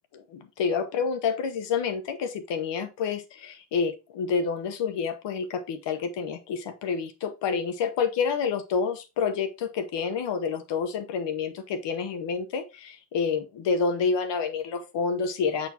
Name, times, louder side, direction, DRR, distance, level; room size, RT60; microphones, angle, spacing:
voice 1, 0.1-15.7, left 5 dB, 65° left, 1.0 m, -28 dB
6.3 x 5.8 x 2.8 m
cardioid pair, 105°, 46 cm